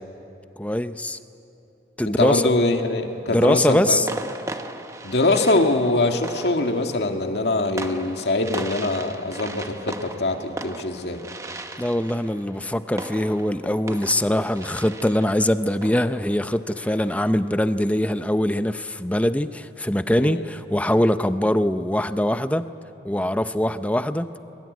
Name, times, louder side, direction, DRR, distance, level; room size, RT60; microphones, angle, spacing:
voice 1, 0.6-1.2 2.0-2.4 3.3-4.1 11.8-22.6 23.0-24.3, left 1 dB, 10° left, 11 dB, 0.6 m, -22 dB
voice 2, 2.1-4.1 5.0-11.2 20.2-20.4, left 2 dB, 75° left, 4 dB, 2.1 m, -23 dB
sound 1, 2.6-3.2 4.1-17.5, right 2 dB, 20° right, 1.0 m, -38 dB
24.0 x 23.0 x 9.5 m, 2.9 s
head